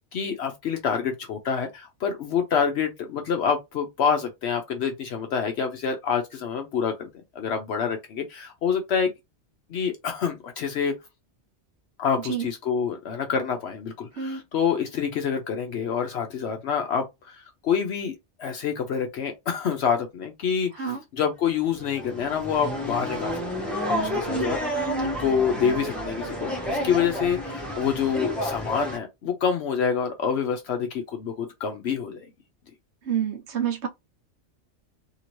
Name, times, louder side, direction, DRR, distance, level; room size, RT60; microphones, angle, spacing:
voice 1, 0.1-7.1 7.3-9.1 9.7-11.0 12.0-24.6 25.0-32.2, left 7 dB, 65° left, 0.8 m, -27 dB
sound 1, 21.6-29.0, equal, ahead, 1.0 m, -30 dB
voice 2, 33.0-33.9, right 7 dB, 70° right, 1.0 m, -28 dB
2.8 x 2.7 x 3.0 m
omnidirectional pair, 1.2 m